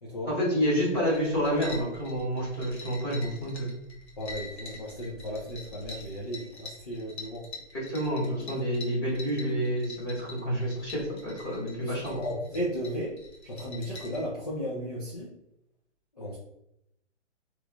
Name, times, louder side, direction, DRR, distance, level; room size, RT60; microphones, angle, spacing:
voice 1, 0.3-3.7 7.7-12.2, equal, 20° left, -6 dB, 1.0 m, -29 dB
sound 1, 0.9-14.2, left 2 dB, 65° left, 1.1 m, -45 dB
voice 2, 4.2-7.4 11.8-13.1 13.4-15.3 16.2-16.4, equal, 35° left, -5 dB, 0.5 m, -35 dB
3.0 x 2.4 x 3.4 m, 0.81 s
hypercardioid pair, 170°, 36 cm